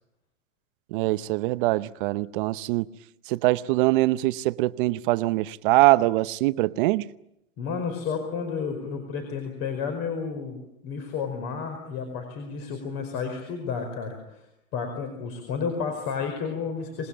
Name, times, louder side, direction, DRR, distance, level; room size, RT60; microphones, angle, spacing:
voice 1, 0.9-2.9 3.3-7.1, right 19 dB, 35° right, 0.9 m, -23 dB
voice 2, 7.6-10.6 10.8-14.4 14.7-17.1, left 5 dB, 35° left, 5.1 m, -31 dB
27.0 x 20.5 x 8.8 m
hypercardioid pair, 140°, 43 cm